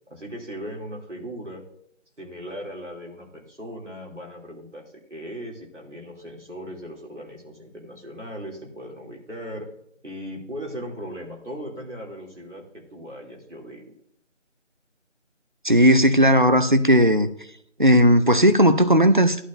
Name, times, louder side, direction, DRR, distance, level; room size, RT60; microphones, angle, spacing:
voice 1, 0.1-1.6 2.2-9.7 10.0-13.9, equal, 70° right, 3.0 m, -38 dB
voice 2, 15.6-17.3 17.8-19.4, equal, 40° right, 0.5 m, -16 dB
14.0 x 11.0 x 2.6 m
figure-of-eight pair, 175°, 37 cm